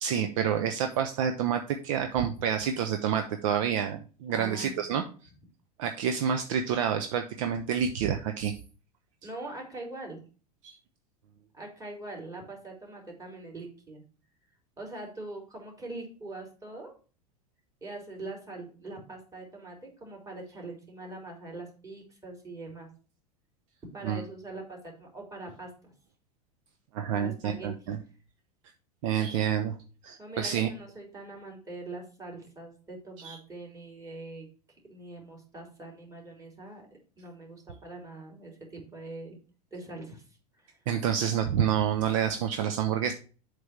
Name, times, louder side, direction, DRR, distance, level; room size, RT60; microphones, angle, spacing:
voice 1, 0.0-5.0 5.8-8.5 10.6-10.8 24.0-24.2 26.9-28.0 29.0-29.7 30.0-30.7 33.2-33.4 40.9-43.1, right 8 dB, 55° right, 6 dB, 0.7 m, -28 dB
voice 2, 4.3-5.1 9.2-10.2 11.5-14.0 14.8-16.9 17.8-22.9 23.9-25.9 27.1-27.7 30.2-34.5 34.9-36.9 37.2-39.4 39.7-40.2 40.6-40.7, right 2 dB, 15° right, -1 dB, 3.2 m, -43 dB
7.7 x 3.4 x 5.8 m, 0.37 s
figure-of-eight pair, 85°, 20 cm